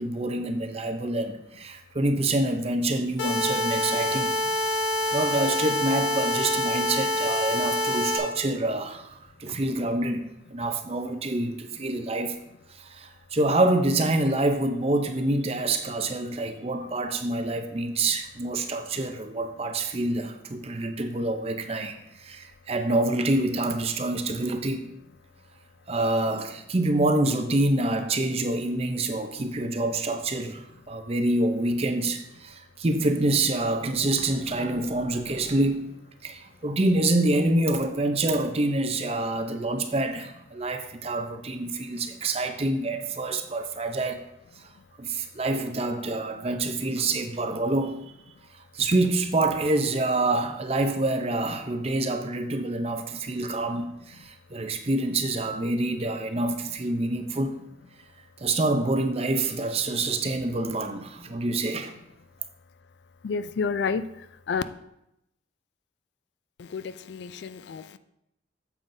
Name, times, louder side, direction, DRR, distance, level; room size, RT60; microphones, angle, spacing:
voice 1, 0.0-4.3 5.1-9.1 9.4-10.2 10.5-12.4 12.8-24.9 25.9-35.9 36.2-44.2 45.0-48.1 48.7-57.6 58.4-61.9, right 2 dB, 30° right, 7 dB, 0.6 m, -26 dB
sound 1, 3.2-8.2, left 1 dB, 80° left, 1.7 m, -26 dB
voice 2, 63.2-64.1 64.5-64.6 66.6-68.0, left 5 dB, 65° left, 13 dB, 0.3 m, -30 dB
8.9 x 7.1 x 2.6 m, 0.83 s
head